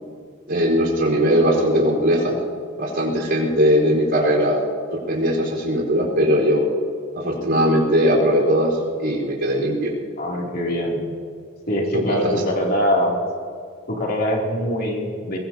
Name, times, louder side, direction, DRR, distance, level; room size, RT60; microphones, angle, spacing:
voice 1, 0.5-2.3 2.8-4.6 4.9-6.7 7.1-9.9 11.9-12.3, equal, 55° right, -3 dB, 4.6 m, -19 dB
voice 2, 10.2-11.0 11.7-13.2 13.9-15.4, equal, 45° left, -2 dB, 3.1 m, -23 dB
22.0 x 22.0 x 2.9 m, 2.1 s
head